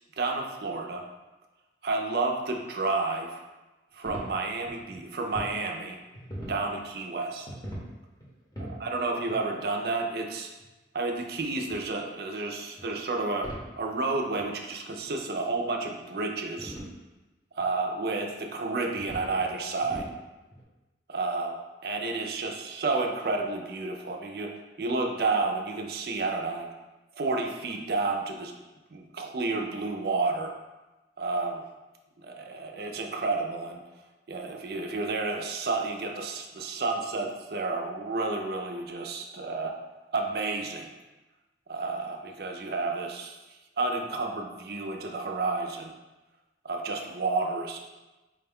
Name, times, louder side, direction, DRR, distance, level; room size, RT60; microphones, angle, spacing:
voice 1, 0.2-1.1 1.8-3.4 3.9-6.0 6.5-7.5 8.8-10.5 10.9-16.8 17.6-20.1 21.1-26.7 27.2-28.6 28.9-30.5 31.2-31.6 32.2-33.8 34.3-39.7 40.1-40.9 41.7-43.4 43.8-45.9 46.6-47.8, right 3 dB, 60° right, 2 dB, 0.4 m, -31 dB
sound 1, 4.0-5.5 5.9-6.6 7.3-7.9 8.2-8.8 9.3-9.4 10.6-10.7 11.7-11.8 12.8-13.0 13.4-13.7 14.1-14.2 14.3-14.5 15.0-15.1 15.7-16.1 16.6-16.9 17.6-17.7 18.2-18.3 19.0-19.5 19.8-20.2 20.5-20.6, equal, 20° left, 0.8 m, -40 dB
4.5 x 2.2 x 3.5 m, 1.1 s
head